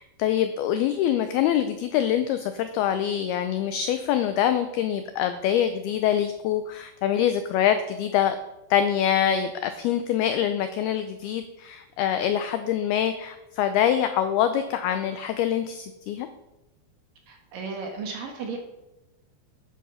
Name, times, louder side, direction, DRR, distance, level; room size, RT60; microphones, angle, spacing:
voice 1, 0.0-8.4 8.7-16.3, left 10 dB, 90° left, 9 dB, 2.2 m, -25 dB
voice 2, 17.3-18.6, right 4 dB, 60° right, 2 dB, 2.8 m, -34 dB
12.0 x 9.4 x 5.6 m, 0.96 s
omnidirectional pair, 5.4 m